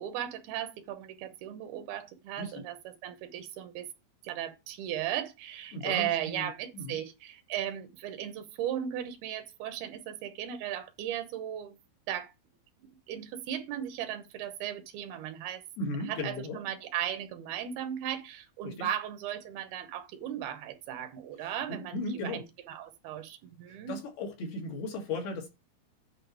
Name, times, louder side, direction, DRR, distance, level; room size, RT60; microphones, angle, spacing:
voice 1, 0.0-3.9 4.2-11.8 12.1-12.3 12.8-15.6 16.1-24.0, right 10 dB, 80° right, 2.9 m, -36 dB
voice 2, 5.7-6.5 6.7-7.0 15.8-16.6 18.6-18.9 21.4-22.4 23.7-25.5, left 2 dB, 80° left, 4.6 m, -36 dB
9.8 x 4.4 x 4.8 m
omnidirectional pair, 4.4 m